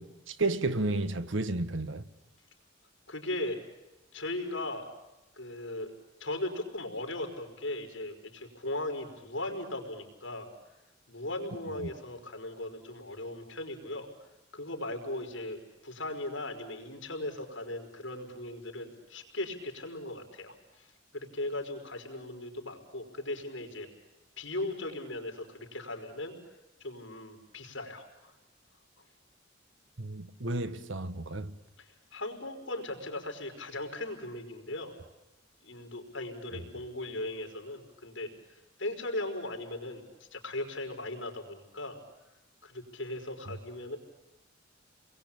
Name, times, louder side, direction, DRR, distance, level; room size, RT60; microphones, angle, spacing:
voice 1, 0.0-2.0 11.8-11.9 30.0-31.5 36.5-36.6, right 2 dB, 85° right, 1.4 m, -32 dB
voice 2, 3.1-3.6 4.1-4.8 5.4-5.9 6.2-10.5 11.1-14.1 14.5-20.9 21.1-23.9 24.4-26.3 26.8-28.3 31.8-34.9 35.6-38.3 38.8-40.0 40.3-42.0 42.6-44.0, left 1 dB, 80° left, 5.0 m, -38 dB
29.5 x 22.0 x 8.8 m
head